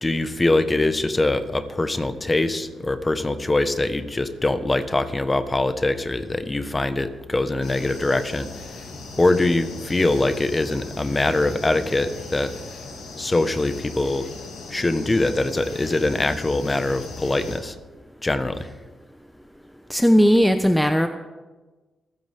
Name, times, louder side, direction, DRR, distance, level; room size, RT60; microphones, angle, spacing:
voice 1, 0.0-8.5 9.2-12.5 13.2-14.3 14.7-17.8 18.2-18.7, left 2 dB, 25° left, 10 dB, 1.4 m, -23 dB
sound 1, 7.6-17.6, left 3 dB, 80° left, 2.8 m, -39 dB
voice 2, 19.9-21.1, equal, ahead, 7 dB, 0.9 m, -17 dB
27.0 x 9.8 x 3.7 m, 1.2 s
supercardioid pair, 55°, 0 cm